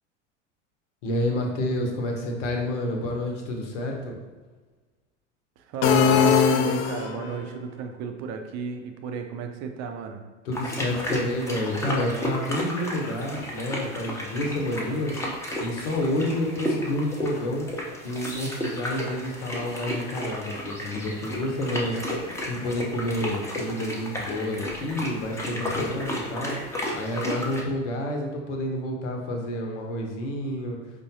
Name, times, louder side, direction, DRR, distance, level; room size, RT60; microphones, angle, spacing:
voice 1, 1.0-4.2 10.4-15.2 15.6-17.7 18.0-26.6 26.9-30.8, left 1 dB, 75° left, 1 dB, 0.9 m, -29 dB
voice 2, 5.6-10.2, right 6 dB, 45° right, 5 dB, 0.6 m, -33 dB
sound 1, 5.8-7.4, left 7 dB, 45° left, 0.4 m, -20 dB
sound 2, 10.5-27.6, left 1 dB, 10° left, 0.6 m, -33 dB
4.9 x 2.2 x 2.8 m, 1.3 s
hypercardioid pair, 90°, 37 cm